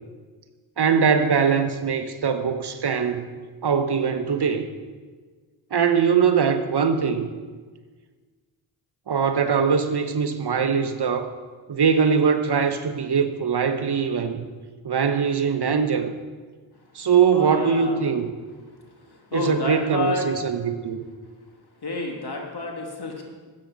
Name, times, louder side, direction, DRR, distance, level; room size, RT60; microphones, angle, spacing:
voice 1, 0.8-3.3 3.6-4.7 5.7-7.3 9.1-11.3 11.7-14.4 14.8-16.1 16.9-18.3 19.3-21.0, right 6 dB, 50° right, 8 dB, 1.1 m, -22 dB
voice 2, 17.3-18.0 18.8-20.3 21.8-23.2, left 2 dB, 50° left, 1 dB, 2.7 m, -30 dB
13.0 x 8.6 x 5.2 m, 1.5 s
supercardioid pair, 40°, 50 cm